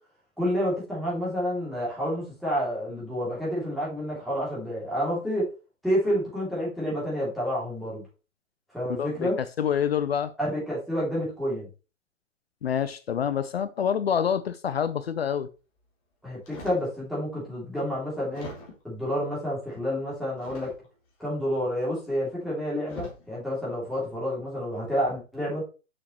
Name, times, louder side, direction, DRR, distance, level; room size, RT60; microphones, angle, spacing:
voice 1, 0.4-5.5 5.8-8.0 8.7-9.4 10.4-11.7 16.2-18.5 18.8-20.7 21.2-25.7, equal, ahead, 2.7 m, -29 dB
voice 2, 9.0-10.3 12.6-15.5, left 8 dB, 50° left, 0.5 m, -27 dB
Fabric flaps, 16.4-16.9 17.6-17.7 18.3-19.0 20.4-21.1 22.2-22.4 22.8-23.3 24.0-24.2, left 2 dB, 25° left, 2.2 m, -42 dB
6.2 x 6.1 x 3.0 m
hypercardioid pair, 155°, 40 cm